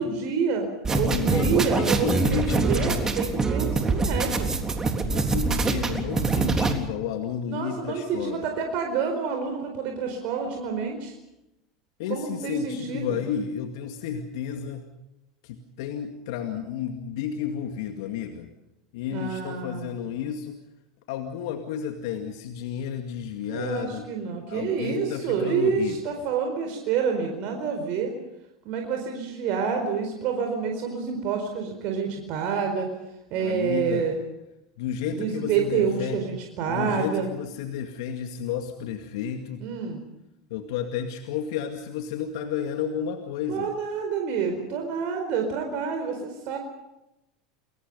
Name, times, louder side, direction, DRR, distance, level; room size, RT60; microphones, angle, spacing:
voice 1, 0.0-4.5 7.5-11.1 12.1-13.2 19.1-19.9 23.5-28.1 28.6-32.9 33.3-34.1 35.1-37.3 39.6-40.0 43.5-46.6, right 6 dB, 55° right, 4 dB, 4.6 m, -28 dB
sound 1, 0.8-6.7, right 4 dB, 20° right, 3.5 m, -24 dB
voice 2, 0.9-3.0 5.1-8.5 12.0-14.9 15.4-18.5 18.9-20.6 21.1-24.1 24.5-26.0 33.4-34.1 34.8-36.2 36.7-39.6 40.5-43.7, left 8 dB, 70° left, 5 dB, 2.2 m, -32 dB
30.0 x 22.0 x 5.5 m, 0.91 s
hypercardioid pair, 85°, 3 cm